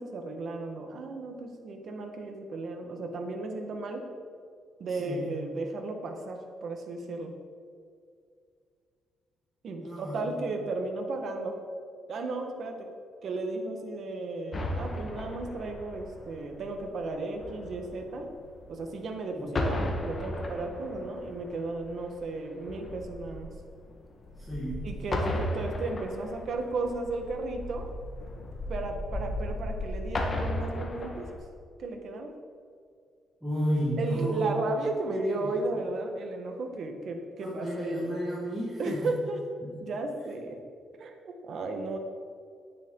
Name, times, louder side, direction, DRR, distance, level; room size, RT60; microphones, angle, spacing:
voice 1, 0.0-4.1 4.8-7.3 9.6-11.6 12.1-12.9 13.2-18.3 18.7-23.5 24.8-27.9 28.7-31.2 31.8-32.3 34.0-38.0 38.8-39.4 39.8-40.6 41.0-41.1 41.4-42.0, right 2 dB, 55° right, 4 dB, 1.5 m, -34 dB
voice 2, 4.9-5.3 9.8-10.4 19.3-19.5 24.4-24.8 33.4-34.5 35.1-35.5 37.4-39.0, equal, ahead, -8 dB, 2.4 m, -32 dB
Salute Cannons, 14.5-19.1 19.4-31.4, left 1 dB, 35° left, 1.5 m, -35 dB
10.5 x 9.7 x 3.9 m, 2.3 s
cardioid pair, 125°, 0 cm